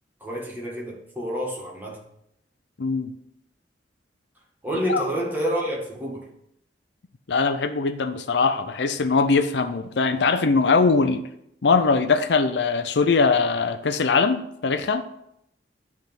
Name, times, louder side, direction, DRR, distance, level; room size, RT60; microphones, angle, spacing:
voice 1, 0.2-2.0 4.6-6.3, equal, 10° right, -3 dB, 1.9 m, -28 dB
voice 2, 2.8-3.1 4.9-5.0 7.3-11.3 11.6-15.1, left 4 dB, 70° left, 10 dB, 0.5 m, -21 dB
10.0 x 3.6 x 5.9 m, 0.77 s
head